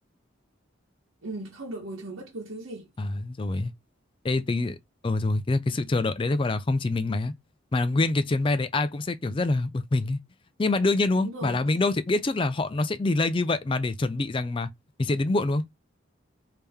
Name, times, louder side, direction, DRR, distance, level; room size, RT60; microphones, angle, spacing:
voice 1, 1.2-2.9 11.2-11.6, right 2 dB, 85° right, 1.0 m, -37 dB
voice 2, 3.0-3.7 4.2-4.8 5.0-7.3 7.7-10.2 10.6-14.7 15.0-15.7, left 2 dB, 25° left, 0.4 m, -25 dB
3.4 x 2.8 x 3.5 m
head